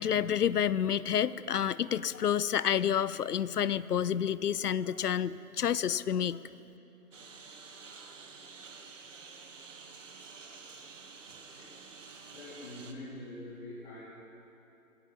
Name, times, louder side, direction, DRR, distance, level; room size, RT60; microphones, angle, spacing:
voice 1, 0.0-6.4, left 9 dB, 85° left, 18 dB, 0.6 m, -29 dB
Engine, 7.1-12.9, right 4 dB, 55° right, 1.4 m, -50 dB
voice 2, 12.3-14.0, left 1 dB, 40° left, -9 dB, 3.5 m, -44 dB
17.0 x 8.7 x 7.1 m, 2.8 s
figure-of-eight pair, 145°, 45 cm